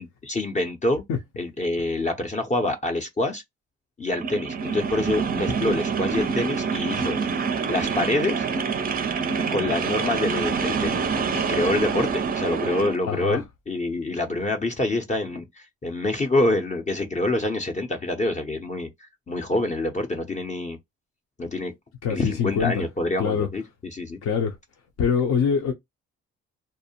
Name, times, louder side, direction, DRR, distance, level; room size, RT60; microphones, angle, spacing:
voice 1, 0.0-1.0 1.4-3.4 4.0-7.2 7.7-8.5 9.5-11.0 11.3-20.8 21.4-21.7 22.1-23.6 23.9-24.2, left 2 dB, 25° left, 0.5 m, -26 dB
sound 1, 4.1-13.0, right 5 dB, 30° right, 0.4 m, -26 dB
voice 2, 13.1-13.4 22.0-22.8 23.2-23.5 24.2-24.6 25.0-25.7, left 6 dB, 70° left, 0.7 m, -24 dB
2.6 x 2.0 x 2.8 m
cardioid pair, 90°, 30 cm